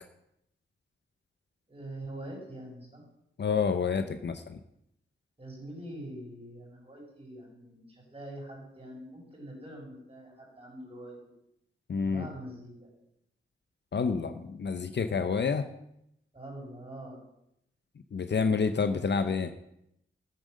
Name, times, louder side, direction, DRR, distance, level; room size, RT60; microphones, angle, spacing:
voice 1, 1.7-3.0 5.4-11.2 12.0-12.9 16.3-17.2, right 1 dB, 25° right, -2 dB, 5.8 m, -44 dB
voice 2, 3.4-4.6 11.9-12.3 13.9-15.7 18.1-19.5, left 5 dB, 55° left, 9 dB, 0.7 m, -28 dB
13.5 x 7.7 x 6.5 m, 0.79 s
wide cardioid pair, 115°, 21 cm